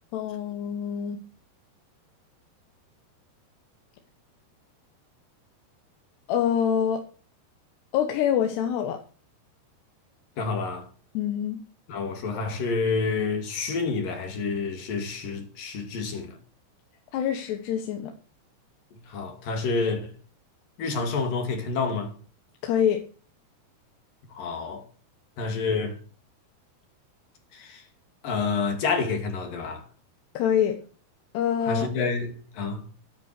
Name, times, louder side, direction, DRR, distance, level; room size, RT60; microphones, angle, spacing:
voice 1, 0.1-1.2 6.3-7.0 7.9-9.0 11.1-11.6 17.1-18.1 22.6-23.0 30.3-30.8 31.3-31.9, left 9 dB, 85° left, 3.5 m, -25 dB
voice 2, 10.4-10.9 11.9-16.4 19.1-20.1 20.8-22.1 24.3-24.8 25.4-26.0 27.5-27.8 28.2-29.8 31.6-32.8, left 4 dB, 60° left, 4.0 m, -28 dB
13.0 x 11.0 x 6.8 m
omnidirectional pair, 4.7 m